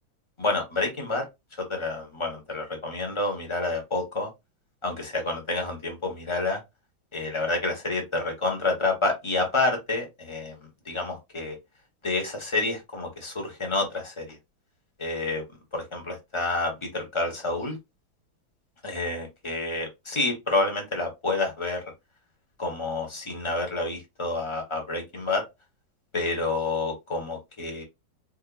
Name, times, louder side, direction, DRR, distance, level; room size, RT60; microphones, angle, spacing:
voice 1, 0.4-1.2 1.6-4.3 4.8-6.6 7.1-10.6 10.9-11.6 12.0-14.4 15.0-15.4 15.7-17.8 18.8-21.8 22.6-25.4 26.1-27.8, left 2 dB, 20° left, 0.8 m, -28 dB
4.6 x 2.7 x 2.3 m
omnidirectional pair, 2.1 m